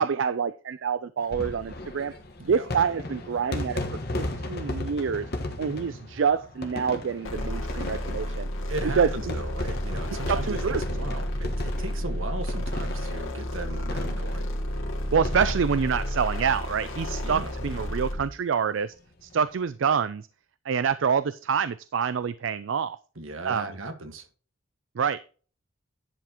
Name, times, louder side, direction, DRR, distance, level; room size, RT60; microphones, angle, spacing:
voice 1, 0.0-2.2 2.5-3.8 4.2-5.3 5.6-8.5 8.9-9.3 10.3-10.8 15.1-18.9 19.2-20.3 20.7-23.0 23.4-23.7 25.0-25.3, right 6 dB, 70° right, 0.4 m, -26 dB
sound 1, 1.2-17.2 17.5-17.6 17.8-17.9 19.2-19.4, left 1 dB, 50° left, 1.4 m, -36 dB
voice 2, 2.4-2.7 8.7-14.5 17.2-17.5 23.1-24.3, right 2 dB, 85° right, 1.6 m, -37 dB
sound 2, 7.2-18.3, equal, 85° left, 2.3 m, -31 dB
11.0 x 7.1 x 2.9 m
head